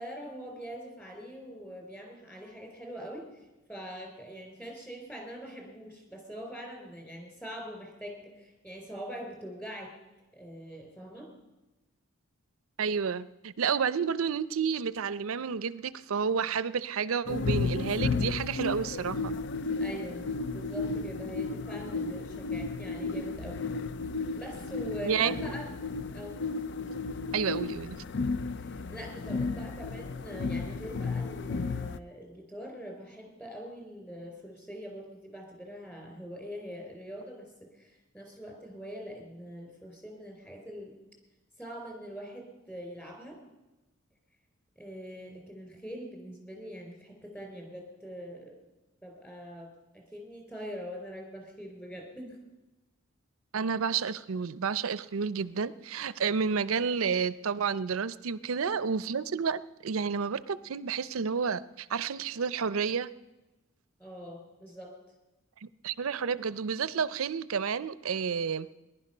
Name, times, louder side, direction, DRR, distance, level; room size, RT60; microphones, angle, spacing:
voice 1, 0.0-10.0 10.3-11.3 19.8-20.2 20.5-23.6 24.4-25.7 26.1-26.4 28.6-40.9 41.6-43.4 44.8-48.5 49.0-52.4 64.0-64.9, equal, 10° left, 2 dB, 3.7 m, -43 dB
voice 2, 12.8-19.4 25.0-25.5 27.3-28.0 53.5-63.1 65.6-68.7, right 6 dB, 85° right, 17 dB, 0.5 m, -30 dB
sound 1, 17.3-32.0, left 4 dB, 55° left, 0.5 m, -33 dB
19.0 x 11.0 x 5.5 m, 1.1 s
head